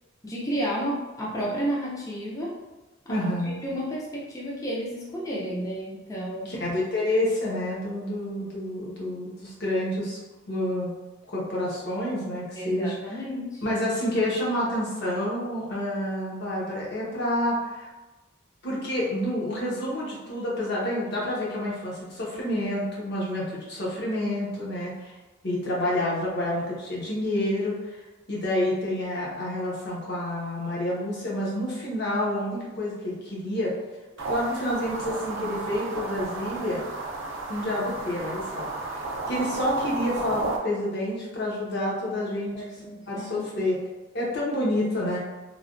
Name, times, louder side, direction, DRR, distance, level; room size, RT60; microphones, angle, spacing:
voice 1, 0.2-2.6 3.1-6.5 12.6-13.6 42.5-43.6, equal, 15° left, -5 dB, 0.5 m, -32 dB
voice 2, 3.1-3.6 6.4-10.2 10.5-10.9 11.3-12.9 13.6-17.9 18.6-25.1 25.4-28.0 28.3-33.7 34.3-36.8 37.5-42.6 43.1-43.8 44.1-45.2, left 1 dB, 55° left, -5 dB, 0.9 m, -28 dB
sound 1, 34.2-40.6, right 3 dB, 70° right, 0.5 m, -33 dB
3.2 x 2.2 x 2.4 m, 1.1 s
head